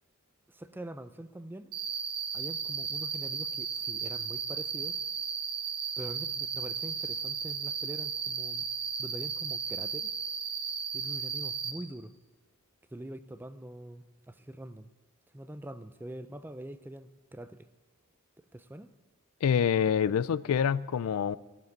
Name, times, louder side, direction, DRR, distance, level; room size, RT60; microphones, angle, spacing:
voice 1, 0.5-1.7 2.3-5.0 6.0-8.7 9.0-10.1 10.9-12.1 12.9-14.9 15.3-17.7 18.4-18.9 20.1-20.2, right 1 dB, 10° right, 0.4 m, -44 dB
Cricket, 1.7-11.7, right 6 dB, 80° right, 1.4 m, -35 dB
voice 2, 19.4-21.4, left 7 dB, 75° left, 0.3 m, -26 dB
15.5 x 7.5 x 9.2 m
head